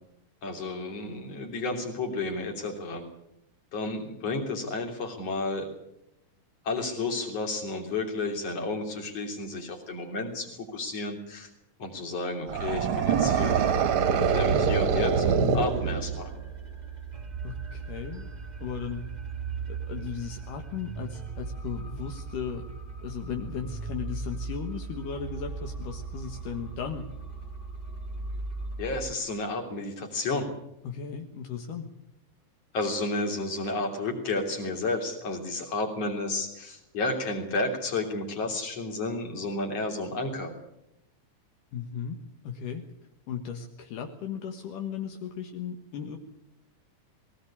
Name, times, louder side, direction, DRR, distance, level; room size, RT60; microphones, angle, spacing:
voice 1, 0.4-3.1 3.7-5.7 6.6-11.5 11.8-13.7 14.1-16.3 28.8-30.5 32.7-40.5, left 2 dB, 50° left, 3 dB, 4.4 m, -32 dB
sound 1, 12.5-16.3, right 6 dB, 55° right, 1.5 m, -25 dB
sound 2, 13.1-29.1, right 5 dB, 25° right, 0.9 m, -37 dB
voice 2, 17.4-18.3 18.6-19.0 19.7-22.7 23.0-27.1 30.8-31.9 41.7-42.2 42.4-42.8 43.3-46.2, left 7 dB, 75° left, 4 dB, 3.0 m, -36 dB
21.0 x 18.5 x 8.6 m, 0.81 s
omnidirectional pair, 3.8 m